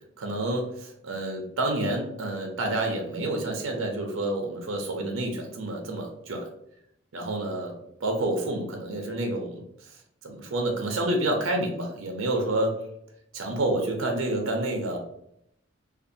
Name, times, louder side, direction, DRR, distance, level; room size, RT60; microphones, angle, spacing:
voice 1, 0.2-6.5 7.1-12.9 13.3-15.0, right 1 dB, 85° right, 2 dB, 0.5 m, -29 dB
2.5 x 2.3 x 2.6 m, 0.77 s
head